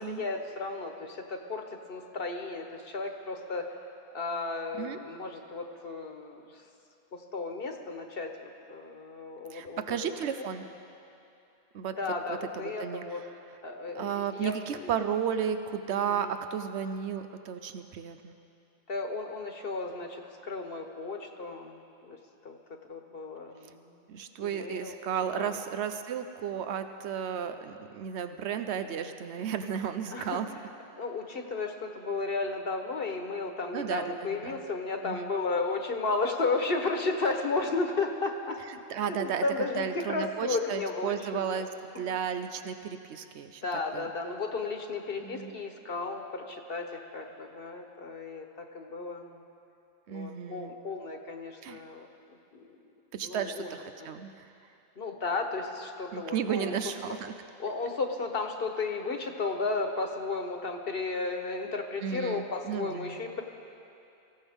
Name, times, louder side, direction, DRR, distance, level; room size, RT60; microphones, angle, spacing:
voice 1, 0.0-3.8 4.1-6.6 7.1-10.2 12.0-13.2 13.6-14.9 15.9-16.3 18.9-22.2 22.4-22.6 22.9-23.9 24.4-25.0 25.4-25.6 30.1-30.4 31.0-38.6 39.0-41.6 43.6-49.4 50.1-52.1 52.5-52.8 53.2-53.7 54.0-54.1 55.0-56.7 57.0-57.2 57.6-63.4, left 3 dB, 60° left, 4 dB, 1.3 m, -34 dB
voice 2, 9.5-10.6 11.7-12.0 12.5-13.0 13.9-18.4 24.1-30.5 33.7-34.0 34.4-34.6 35.0-35.3 38.9-39.4 39.8-41.7 41.9-43.6 43.9-44.1 45.2-45.5 50.1-50.7 51.6-51.8 53.1-54.3 56.1-57.3 62.0-63.2, right 8 dB, 90° right, 8 dB, 1.0 m, -33 dB
24.0 x 15.5 x 3.6 m, 2.7 s
omnidirectional pair, 1.1 m